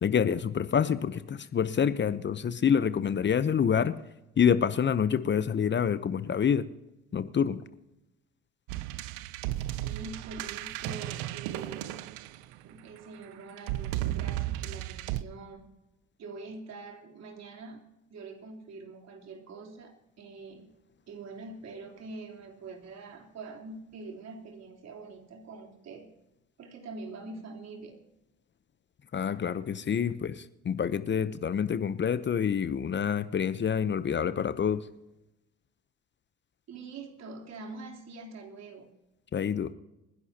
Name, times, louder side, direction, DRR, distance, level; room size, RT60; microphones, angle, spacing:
voice 1, 0.0-4.0 4.4-6.6 7.1-7.6 29.1-34.9 39.3-39.7, left 7 dB, 35° left, 13 dB, 0.9 m, -27 dB
sound 1, 8.7-12.8 13.6-15.2, right 15 dB, 75° right, 0.7 m, -34 dB
voice 2, 9.8-12.0 12.6-15.7 16.2-17.8 18.1-20.7 21.1-26.1 26.6-28.0 36.7-38.9, right 3 dB, 55° right, 1 dB, 3.7 m, -44 dB
27.0 x 11.0 x 2.9 m, 0.93 s
hypercardioid pair, 60°, 31 cm